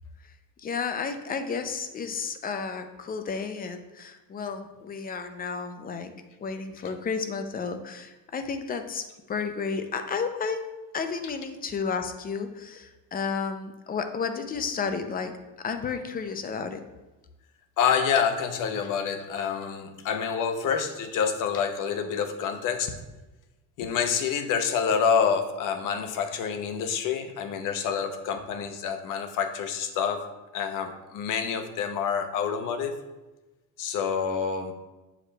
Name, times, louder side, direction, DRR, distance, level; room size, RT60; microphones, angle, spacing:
voice 1, 0.6-6.1 6.4-15.4 15.6-16.8, left 5 dB, 25° left, 7 dB, 0.5 m, -32 dB
voice 2, 17.8-22.9 23.8-30.2 30.5-33.0 33.8-34.7, left 7 dB, 60° left, 8 dB, 0.8 m, -27 dB
7.2 x 4.9 x 3.3 m, 1.1 s
cardioid pair, 135°, 36 cm